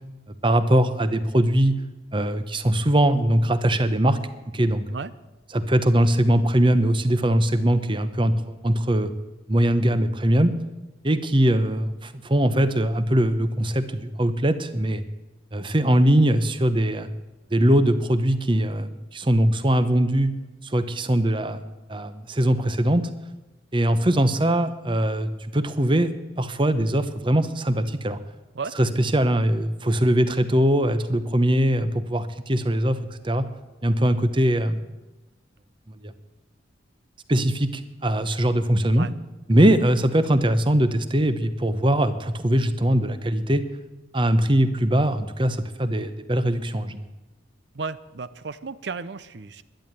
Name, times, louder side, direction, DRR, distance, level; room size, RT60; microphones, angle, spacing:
voice 1, 0.4-1.8 2.1-4.2 4.5-4.8 5.5-9.1 9.5-10.5 11.0-15.0 15.5-17.1 17.5-20.3 20.6-23.0 23.7-26.1 26.4-28.2 28.8-33.5 33.8-34.8 36.0-36.1 37.3-39.1 39.5-43.6 44.1-47.0, right 1 dB, 25° right, 12 dB, 0.8 m, -21 dB
voice 2, 47.7-49.6, right 4 dB, 65° right, 15 dB, 0.6 m, -34 dB
11.5 x 11.0 x 9.1 m, 1.1 s
head